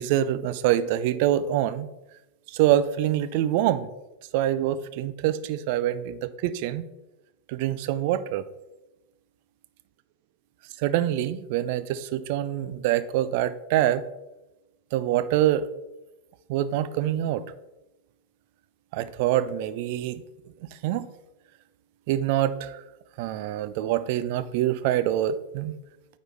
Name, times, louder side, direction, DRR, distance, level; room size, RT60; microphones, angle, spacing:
voice 1, 0.0-1.9 2.5-3.9 4.3-6.8 7.5-8.4 10.8-14.0 14.9-15.7 16.5-17.4 18.9-20.2 20.8-21.1 22.1-22.8 23.2-25.8, right 12 dB, 50° right, 14 dB, 0.4 m, -25 dB
8.9 x 4.2 x 3.1 m, 0.98 s
figure-of-eight pair, 90°, 0 cm